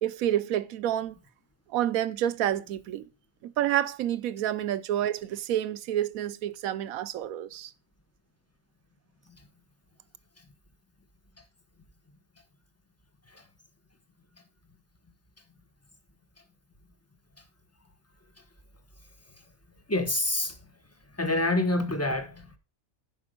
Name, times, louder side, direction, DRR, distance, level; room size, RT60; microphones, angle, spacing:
voice 1, 0.0-1.2 1.7-3.1 3.4-7.7, right 11 dB, 80° right, 1.1 m, -29 dB
voice 2, 19.9-20.7 21.0-22.6, left 2 dB, 10° left, 1.0 m, -28 dB
10.5 x 5.0 x 5.1 m
omnidirectional pair, 1.4 m